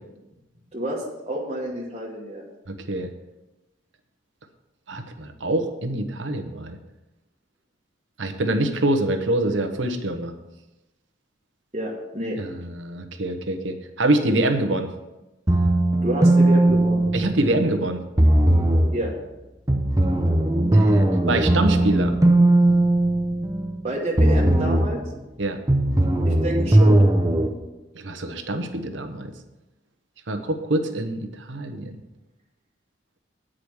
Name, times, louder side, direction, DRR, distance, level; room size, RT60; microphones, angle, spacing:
voice 1, 0.7-2.4 11.7-12.4 16.0-17.1 18.9-19.1 23.8-25.0 26.2-27.1, right 1 dB, 35° right, -5 dB, 1.2 m, -29 dB
voice 2, 2.7-3.1 4.9-6.8 8.2-10.3 12.4-14.9 17.1-18.0 20.7-22.1 25.4-25.6 27.9-29.3 30.3-32.0, right 1 dB, 90° right, 6 dB, 1.0 m, -25 dB
sound 1, 15.5-17.7 18.2-19.0 19.7-23.8 24.2-25.0 25.7-27.5, right 1 dB, 20° right, 0.7 m, -18 dB
8.7 x 5.0 x 6.3 m, 1.0 s
head